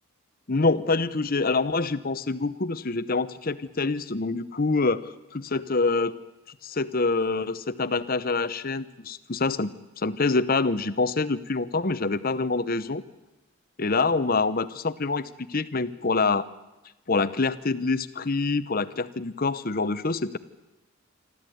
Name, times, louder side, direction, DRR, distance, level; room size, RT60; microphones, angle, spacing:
voice 1, 0.5-6.2 6.6-13.0 13.8-16.5 17.1-20.4, left 3 dB, 40° left, 15 dB, 0.8 m, -26 dB
26.5 x 13.5 x 9.3 m, 1.0 s
head